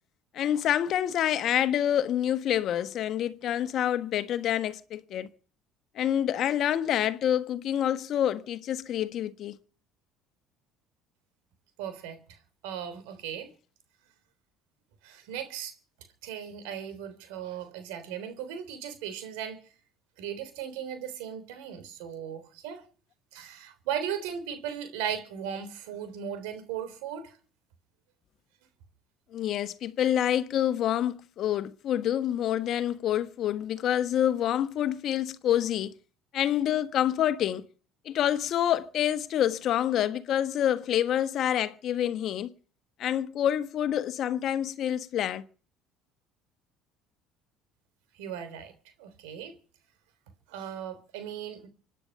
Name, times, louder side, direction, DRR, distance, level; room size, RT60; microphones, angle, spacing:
voice 1, 0.3-5.3 5.9-9.6 29.3-35.9 36.3-37.6 38.0-42.5 43.0-45.4, left 10 dB, 60° left, 1.3 m, -27 dB
voice 2, 11.8-12.4 12.6-13.5 15.0-15.7 16.2-19.6 20.2-22.8 23.3-27.3 48.2-48.7 49.0-49.5 50.5-51.7, right 8 dB, 85° right, 3.5 m, -37 dB
26.0 x 9.9 x 5.4 m
supercardioid pair, 85°, 0 cm